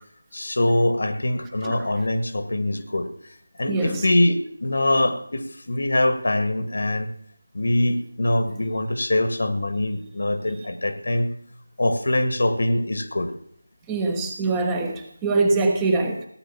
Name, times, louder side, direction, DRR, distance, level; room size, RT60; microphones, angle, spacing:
voice 1, 0.3-3.1 3.6-7.1 7.5-11.3 11.8-13.3, left 1 dB, 65° left, 9 dB, 1.8 m, -23 dB
voice 2, 3.7-4.1 13.9-16.3, right 3 dB, 10° right, 4 dB, 1.3 m, -23 dB
17.0 x 8.4 x 7.3 m, 0.68 s
figure-of-eight pair, 170°, 0 cm